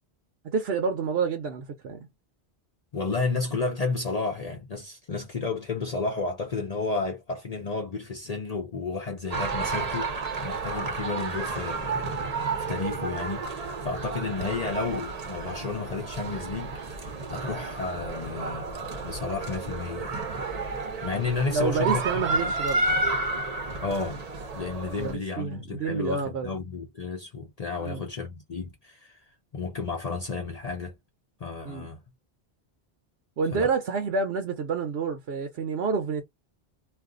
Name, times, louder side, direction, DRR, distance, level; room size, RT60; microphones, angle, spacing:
voice 1, 0.4-2.1 21.5-22.9 24.9-26.5 27.8-28.0 31.6-31.9 33.4-36.2, right 5 dB, 80° right, 0.9 m, -28 dB
voice 2, 2.9-12.3 12.7-16.7 17.3-20.2 21.0-22.5 23.8-24.2 24.5-29.2 29.5-30.9 31.4-32.0 33.5-33.7, left 4 dB, 45° left, 0.7 m, -32 dB
sound 1, 9.3-25.1, right 3 dB, 40° right, 0.8 m, -31 dB
2.5 x 2.5 x 3.6 m
omnidirectional pair, 1.0 m